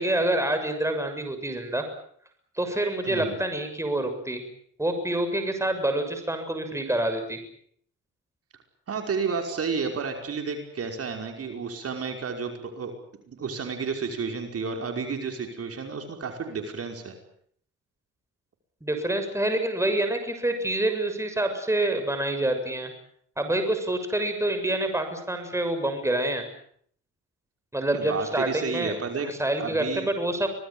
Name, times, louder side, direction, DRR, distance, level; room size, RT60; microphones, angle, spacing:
voice 1, 0.0-1.9 2.6-4.4 4.8-7.4 18.8-22.9 23.4-26.4 27.7-29.0 29.2-30.5, right 1 dB, 10° right, 7 dB, 6.9 m, -27 dB
voice 2, 3.0-3.4 8.9-12.9 13.3-17.2 27.9-29.3 29.6-30.1, right 5 dB, 50° right, 4 dB, 5.4 m, -31 dB
25.5 x 19.0 x 8.9 m, 0.63 s
cardioid pair, 90°, 30 cm